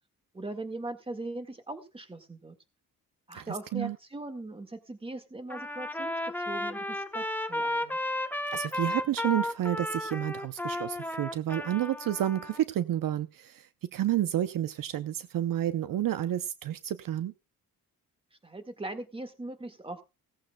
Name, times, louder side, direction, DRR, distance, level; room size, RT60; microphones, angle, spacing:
voice 1, 0.3-2.6 3.3-6.2 6.5-8.0 18.4-20.0, right 2 dB, 15° right, 1.7 m, -40 dB
voice 2, 3.3-4.0 8.5-17.3, right 12 dB, 65° right, 0.7 m, -30 dB
Trumpet, 5.5-12.6, left 1 dB, 5° left, 0.8 m, -33 dB
17.0 x 14.5 x 2.3 m
cardioid pair, 115°, 36 cm